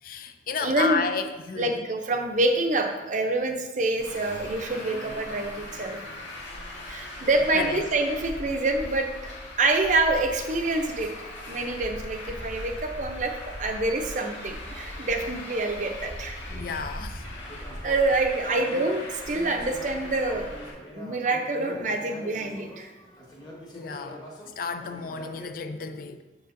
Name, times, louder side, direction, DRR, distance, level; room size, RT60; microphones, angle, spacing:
voice 1, 0.0-1.9 7.5-7.9 16.5-17.3 23.7-24.2 24.6-26.2, left 5 dB, 50° left, 9 dB, 0.5 m, -32 dB
voice 2, 0.6-1.0 1.6-6.0 6.9-9.3 9.6-11.1 11.5-13.3 13.6-16.4 17.8-20.5 20.9-22.9, right 2 dB, 45° right, 4 dB, 0.6 m, -26 dB
Traffic noise roadway noise, 4.0-20.7, left 1 dB, 85° left, 1.7 m, -39 dB
sound 1, 16.5-25.5, left 1 dB, 25° left, 1.2 m, -44 dB
7.2 x 6.8 x 2.6 m, 1.2 s
head